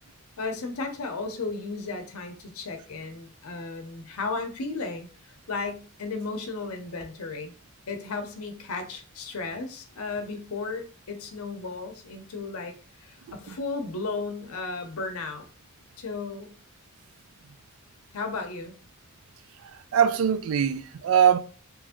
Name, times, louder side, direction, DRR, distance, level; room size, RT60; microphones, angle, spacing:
voice 1, 0.4-5.1 5.5-7.5 7.9-12.7 13.0-15.5 16.0-16.5 18.1-18.8, left 3 dB, 85° left, 0.7 m, -34 dB
voice 2, 19.9-21.4, right 8 dB, 70° right, 0.3 m, -22 dB
3.0 x 2.6 x 3.6 m
head